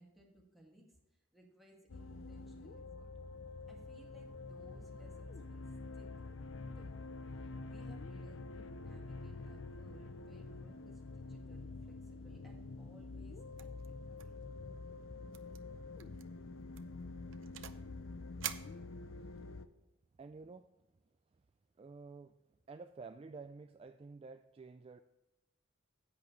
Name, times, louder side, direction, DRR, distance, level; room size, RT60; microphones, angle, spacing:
voice 1, 0.0-3.1 3.7-6.1 6.6-7.0 7.3-14.6, right 1 dB, ahead, 2.2 m, -62 dB
sound 1, 1.9-19.7, left 3 dB, 75° left, 0.6 m, -47 dB
sound 2, 13.6-13.9 14.2-14.4 14.7-14.8 15.3-15.6 16.0-16.2 16.7-17.9 18.4-19.4, right 11 dB, 70° right, 0.6 m, -46 dB
voice 2, 19.0-19.3 20.2-20.7 21.8-22.4 22.7-25.0, right 4 dB, 30° right, 0.3 m, -51 dB
10.5 x 8.5 x 3.2 m
head